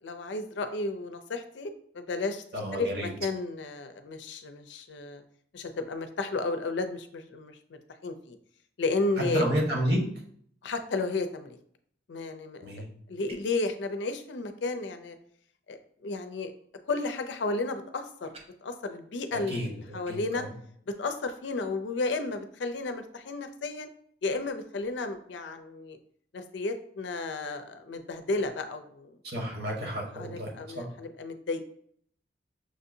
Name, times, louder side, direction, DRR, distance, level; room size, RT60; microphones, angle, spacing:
voice 1, 0.0-2.4 2.7-5.2 5.5-8.4 8.8-9.4 10.6-11.6 12.1-15.2 15.7-16.5 16.9-18.3 18.6-20.4 20.9-23.9 24.2-26.0 26.3-29.2 30.1-31.6, left 3 dB, 75° left, 8 dB, 0.5 m, -33 dB
voice 2, 2.5-3.1 9.3-10.0 12.6-12.9 19.5-20.5 29.2-30.5 30.8-30.9, equal, 60° right, -1 dB, 1.2 m, -30 dB
sound 1, 13.3-13.7 18.2-18.5, right 1 dB, 35° right, 0.5 m, -47 dB
6.2 x 2.7 x 2.6 m, 0.63 s
head